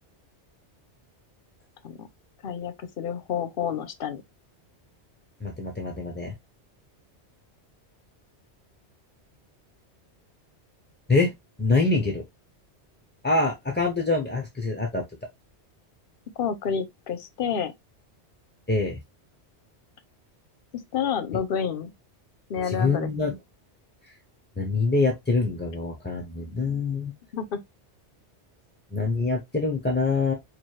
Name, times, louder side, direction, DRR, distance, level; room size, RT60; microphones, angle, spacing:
voice 1, 2.4-4.2 16.4-17.7 20.9-21.9 22.5-23.1 27.3-27.6, left 7 dB, 55° left, 0.8 m, -29 dB
voice 2, 5.4-6.3 11.1-11.3 11.6-12.2 13.2-15.0 18.7-19.0 22.6-23.4 24.6-27.1 28.9-30.3, left 3 dB, 15° left, 0.5 m, -25 dB
4.5 x 2.4 x 3.1 m
omnidirectional pair, 1.2 m